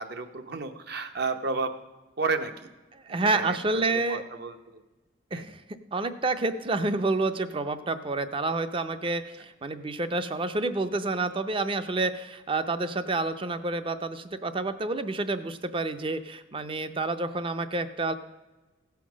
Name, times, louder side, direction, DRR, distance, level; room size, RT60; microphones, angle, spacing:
voice 1, 0.0-1.7 2.2-2.7 3.1-4.8 5.3-5.5, right 4 dB, 55° right, 8 dB, 0.8 m, -32 dB
voice 2, 3.1-4.2 5.3-5.6 5.9-18.1, right 2 dB, 25° right, 11 dB, 0.5 m, -29 dB
16.0 x 5.8 x 6.2 m, 1.2 s
head